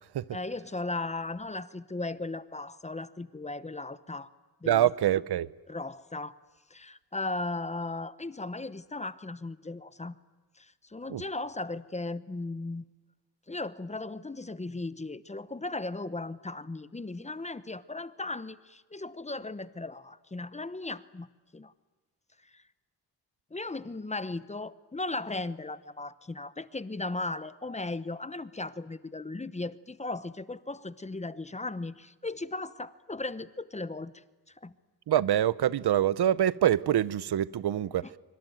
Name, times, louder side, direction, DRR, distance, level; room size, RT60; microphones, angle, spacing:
voice 1, 0.3-4.3 4.6-4.9 5.7-6.4 6.7-10.2 10.6-12.8 13.5-21.3 21.5-21.7 22.4-22.6 23.5-34.7, left 2 dB, 20° left, 0.9 m, -37 dB
voice 2, 4.7-5.5 11.1-11.2 35.1-38.1, right 11 dB, 80° right, 0.8 m, -25 dB
25.5 x 25.0 x 9.2 m
wide cardioid pair, 135°, 38 cm